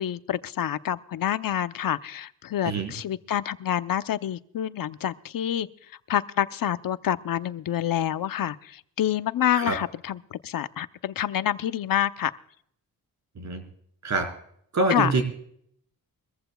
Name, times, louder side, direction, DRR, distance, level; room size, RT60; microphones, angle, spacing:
voice 1, 0.0-5.7 6.1-12.3 14.9-15.1, left 11 dB, 65° left, 13 dB, 0.8 m, -27 dB
voice 2, 14.7-15.2, right 3 dB, 50° right, 5 dB, 4.6 m, -25 dB
23.5 x 14.5 x 2.3 m, 0.67 s
cardioid pair, 90°, 36 cm